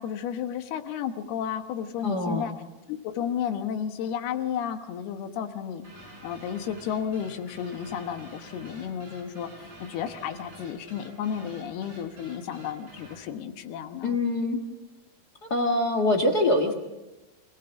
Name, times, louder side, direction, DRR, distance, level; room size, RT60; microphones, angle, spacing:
voice 1, 0.0-2.5 2.9-5.8 6.2-14.2, left 8 dB, 85° left, 7 dB, 3.3 m, -32 dB
voice 2, 2.0-2.5 14.0-14.6 15.5-16.7, left 1 dB, 50° left, 6 dB, 1.1 m, -24 dB
sound 1, 5.8-13.3, right 1 dB, 30° right, 6.5 m, -48 dB
26.5 x 18.0 x 7.1 m, 1.1 s
omnidirectional pair, 4.4 m